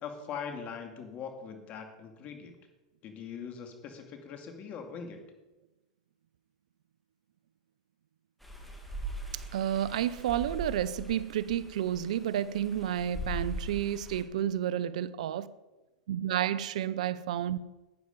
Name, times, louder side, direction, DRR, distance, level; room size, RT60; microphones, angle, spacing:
voice 1, 0.0-2.6 3.0-5.2, left 6 dB, 40° left, 2.4 m, -41 dB
sound 1, 8.4-14.2, right 1 dB, ahead, 2.5 m, -40 dB
voice 2, 9.3-15.5 16.1-17.6, right 11 dB, 75° right, 0.6 m, -31 dB
11.5 x 9.5 x 5.3 m
hypercardioid pair, 110°, 4 cm